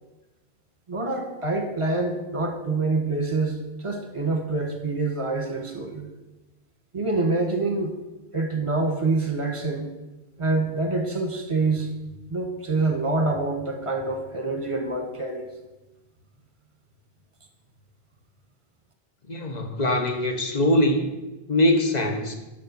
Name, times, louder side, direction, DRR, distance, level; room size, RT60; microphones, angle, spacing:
voice 1, 0.9-6.1 6.9-7.9 8.3-9.9 10.4-11.9 12.3-15.5, right 3 dB, 30° right, 3 dB, 1.2 m, -26 dB
voice 2, 19.3-21.1 21.5-22.3, left 1 dB, 45° left, 4 dB, 1.1 m, -22 dB
7.5 x 5.3 x 6.8 m, 1.1 s
omnidirectional pair, 1.1 m